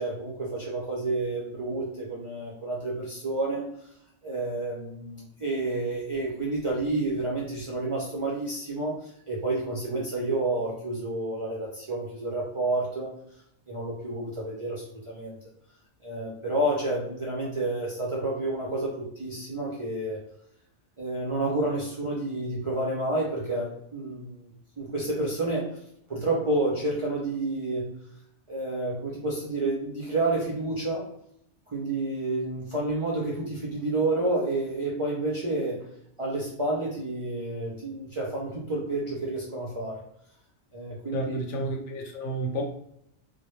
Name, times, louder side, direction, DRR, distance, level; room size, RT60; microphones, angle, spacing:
voice 1, 0.0-3.6 4.2-13.1 13.7-15.4 16.0-20.2 21.0-24.5 24.8-25.7 26.1-27.8 28.5-31.0 31.7-35.8 36.2-40.0 40.7-41.4, right 2 dB, 50° right, -5 dB, 0.3 m, -29 dB
voice 2, 41.1-42.6, right 1 dB, 90° left, 1 dB, 1.0 m, -31 dB
2.1 x 2.1 x 3.0 m, 0.71 s
omnidirectional pair, 1.2 m